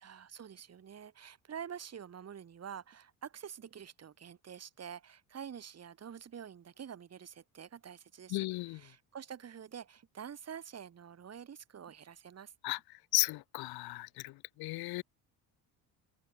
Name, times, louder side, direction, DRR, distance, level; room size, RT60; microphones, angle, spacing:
voice 1, 0.0-12.5, right 8 dB, 40° right, 2.5 m, -47 dB
voice 2, 8.3-8.8 12.6-12.8 13.1-15.0, left 22 dB, 65° left, 0.6 m, -34 dB
open air
cardioid pair, 105°, 41 cm